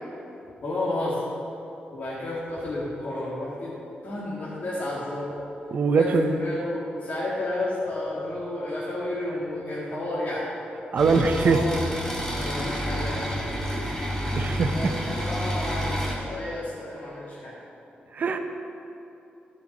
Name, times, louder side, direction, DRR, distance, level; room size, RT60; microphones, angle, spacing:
voice 1, 0.6-1.2 1.9-3.8 4.0-5.3 5.9-10.5 11.5-11.6 12.3-14.0 14.7-17.5, left 1 dB, 55° left, -8 dB, 2.0 m, -31 dB
voice 2, 5.7-6.4 10.9-11.6 12.3-12.6 14.3-14.9 18.1-18.4, right 4 dB, 55° right, 6 dB, 0.8 m, -23 dB
sound 1, 11.0-16.1, equal, 15° left, 2.2 m, -29 dB
14.5 x 5.5 x 5.4 m, 2.9 s
cardioid pair, 105°, 3 cm